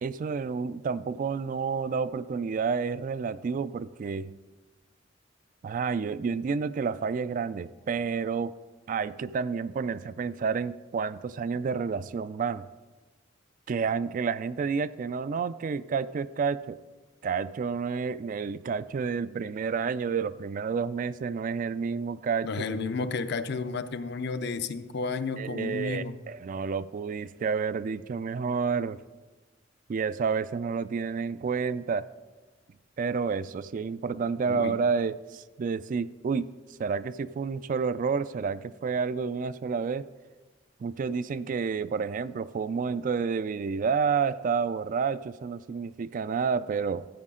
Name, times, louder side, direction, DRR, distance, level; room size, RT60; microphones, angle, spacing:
voice 1, 0.0-4.3 5.6-8.5 8.9-12.7 13.7-16.8 17.2-22.9 25.4-29.0 29.9-32.1 33.0-36.5 36.8-40.1 40.8-47.1, right 5 dB, 45° right, 15 dB, 0.3 m, -30 dB
voice 2, 22.4-26.2 34.5-34.7, left 4 dB, 60° left, 11 dB, 0.5 m, -32 dB
14.0 x 8.3 x 3.7 m, 1.2 s
head